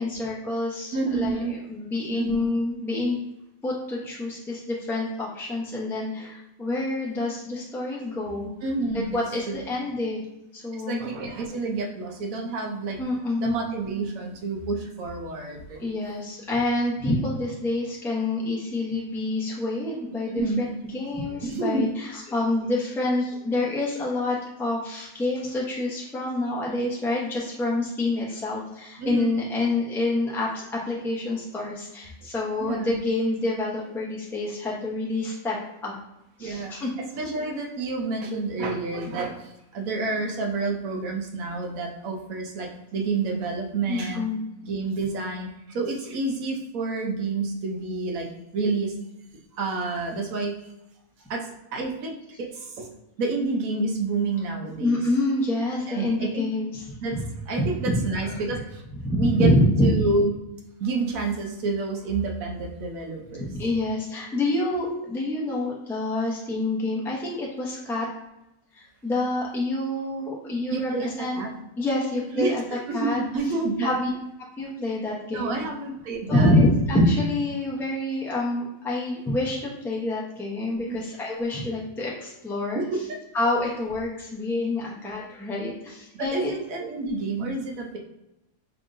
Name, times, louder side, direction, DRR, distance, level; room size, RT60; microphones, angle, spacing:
voice 1, 0.0-3.2 3.6-8.5 8.9-10.2 10.5-11.0 13.0-13.6 15.8-20.7 20.9-35.9 36.4-36.9 43.9-44.4 54.8-56.9 57.1-57.2 57.9-58.4 59.0-60.0 63.4-68.1 68.7-71.4 71.8-72.6 72.9-74.1 74.6-75.5 76.3-82.8 83.3-86.5, left 2 dB, ahead, -4 dB, 0.7 m, -27 dB
voice 2, 0.9-1.5 2.1-2.5 8.6-9.2 9.5-9.7 10.9-13.0 13.4-15.8 20.3-20.6 21.4-21.9 29.0-29.3 32.6-33.0 36.4-36.7 37.0-44.3 44.6-48.3 48.5-49.0 49.6-50.5 51.3-52.9 53.2-55.0 55.9-56.4 57.0-57.2 57.5-58.8 59.2-59.5 59.8-60.3 60.8-63.5 70.7-71.5 72.4-73.9 75.3-76.5 80.9-81.0 82.7-83.2 86.2-88.0, right 3 dB, 80° right, 1 dB, 1.2 m, -29 dB
5.2 x 3.4 x 2.6 m, 0.91 s
omnidirectional pair, 1.4 m